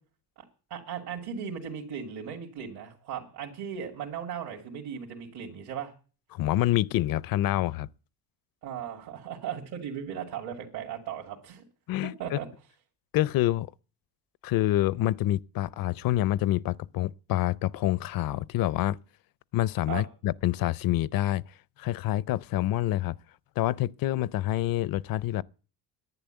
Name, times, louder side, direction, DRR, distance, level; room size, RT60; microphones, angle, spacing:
voice 1, 0.7-5.9 8.6-11.6 12.0-12.5 19.9-20.0, right 8 dB, 65° right, 2.8 m, -37 dB
voice 2, 6.3-7.9 11.9-12.4 13.1-13.7 14.4-19.0 19.5-21.4 21.8-23.2 23.6-25.4, left 15 dB, 55° left, 0.6 m, -27 dB
11.0 x 9.9 x 9.2 m
cardioid pair, 115°, 41 cm